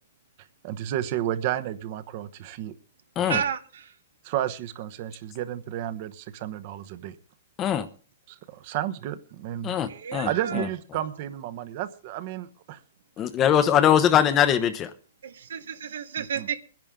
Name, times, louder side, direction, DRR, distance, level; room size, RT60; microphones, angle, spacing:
voice 1, 0.6-2.7 3.3-3.4 4.2-7.1 8.3-9.9 10.2-12.8 16.2-16.5, right 12 dB, 40° right, 1.0 m, -32 dB
voice 2, 3.3-3.8 9.9-10.7 15.2-16.6, right 7 dB, 80° right, 1.2 m, -31 dB
voice 3, 9.6-10.3 13.2-14.9, left 9 dB, 20° left, 0.9 m, -21 dB
21.5 x 10.5 x 3.7 m
hypercardioid pair, 160°, 0 cm